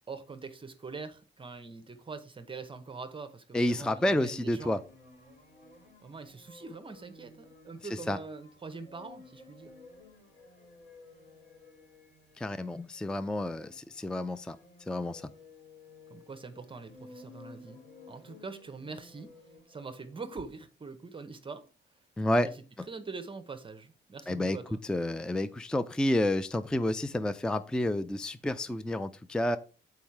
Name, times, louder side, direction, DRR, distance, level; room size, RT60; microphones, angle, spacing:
voice 1, 0.1-4.8 6.0-9.7 16.1-17.8 18.1-19.3 19.7-21.7 22.4-22.5 22.9-24.8, right 4 dB, 25° right, 0.8 m, -43 dB
voice 2, 3.5-4.8 7.8-8.2 12.4-14.6 14.9-15.3 22.2-22.5 22.8-22.9 24.3-24.6 24.8-29.6, left 1 dB, 5° left, 0.4 m, -30 dB
sound 1, 3.6-20.2, left 2 dB, 60° left, 3.7 m, -55 dB
7.1 x 4.7 x 4.6 m
cardioid pair, 90°, 20 cm